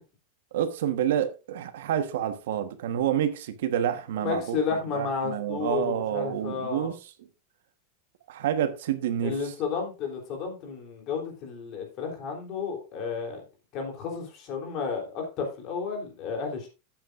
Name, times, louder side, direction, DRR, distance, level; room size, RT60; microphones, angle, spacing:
voice 1, 0.5-7.0 8.3-9.4, right 10 dB, 70° right, 1.2 m, -28 dB
voice 2, 4.2-6.9 9.2-13.4 13.7-16.7, left 5 dB, 30° left, 3.3 m, -32 dB
14.0 x 8.7 x 2.5 m
supercardioid pair, 175°, 0 cm